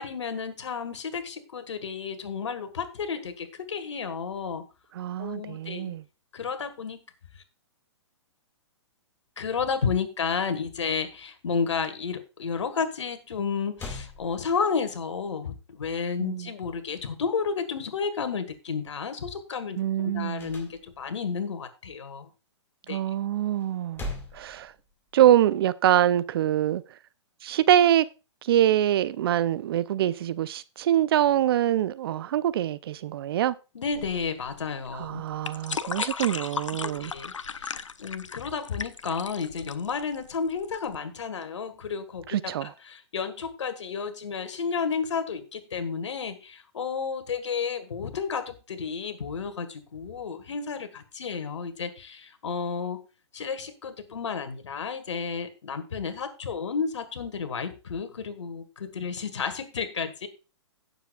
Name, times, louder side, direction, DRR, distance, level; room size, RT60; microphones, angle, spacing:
voice 1, 0.0-4.6 5.2-5.9 6.3-7.0 9.4-22.3 22.9-23.0 33.7-35.2 36.8-53.0 53.3-60.3, left 5 dB, 70° left, 1.7 m, -32 dB
voice 2, 5.0-6.0 16.2-16.5 19.8-20.5 22.9-24.0 24.3-24.7 25.1-26.8 27.4-28.1 28.4-33.5 34.9-37.1 42.3-42.7, right 11 dB, 50° right, 0.6 m, -24 dB
sound 1, 13.3-13.4 13.8-14.9 20.4-21.3 23.6-25.2, left 2 dB, 15° left, 2.1 m, -40 dB
sound 2, 33.9-41.0, left 5 dB, 90° left, 0.6 m, -36 dB
17.0 x 7.1 x 2.4 m
hypercardioid pair, 125°, 15 cm